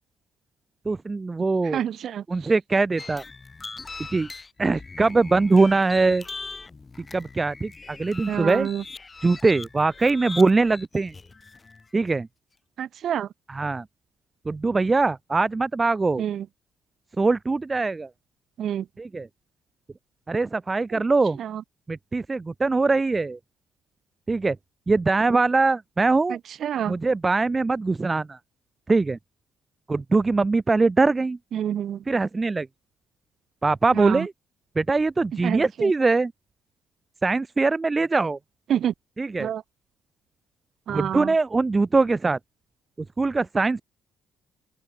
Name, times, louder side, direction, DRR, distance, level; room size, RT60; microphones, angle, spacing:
voice 1, 0.8-1.8 2.3-3.2 4.1-4.3 4.6-6.2 7.1-8.7 9.2-11.1 11.9-12.3 13.5-13.8 14.4-16.2 17.2-18.1 19.0-19.3 20.3-21.4 21.9-23.4 24.3-24.6 24.9-26.4 26.8-28.4 28.9-29.2 29.9-31.4 32.1-32.7 33.6-34.3 34.7-36.3 37.2-38.4 39.2-39.5 40.9-42.4 43.2-43.8, right 3 dB, 25° right, 1.4 m, -22 dB
voice 2, 1.7-2.2 8.3-8.8 12.8-13.3 16.2-16.4 18.6-18.8 21.4-21.6 26.6-26.9 31.5-32.0 33.9-34.3 35.4-35.9 38.7-38.9 39.4-39.6 40.9-41.3, right 9 dB, 65° right, 1.3 m, -27 dB
sound 1, 3.0-11.9, left 4 dB, 30° left, 2.8 m, -41 dB
open air
cardioid pair, 90°, 0 cm